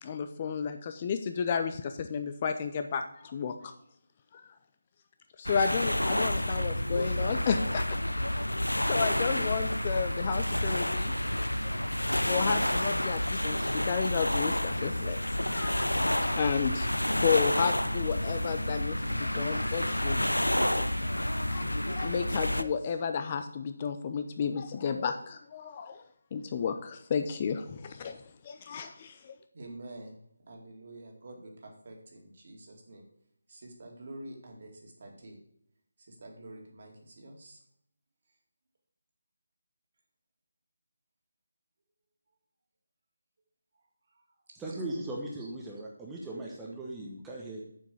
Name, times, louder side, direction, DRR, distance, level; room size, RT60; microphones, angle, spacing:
voice 1, 0.0-3.7 4.3-4.4 5.4-8.0 8.8-11.1 11.6-11.8 12.3-15.2 15.5-16.9 17.2-20.4 20.8-20.9 21.5-26.0 26.3-28.2 28.4-29.4, left 6 dB, 30° left, 8 dB, 0.5 m, -32 dB
sound 1, 5.4-22.6, left 1 dB, 85° left, 0.6 m, -29 dB
voice 2, 29.5-33.0 33.5-35.4 36.1-37.6 44.1-44.2 45.0-45.2, right 1 dB, 45° right, 1 dB, 2.2 m, -47 dB
voice 3, 44.6-47.6, right 1 dB, 10° right, -4 dB, 1.0 m, -38 dB
7.2 x 6.0 x 6.7 m, 0.71 s
figure-of-eight pair, 155°, 0 cm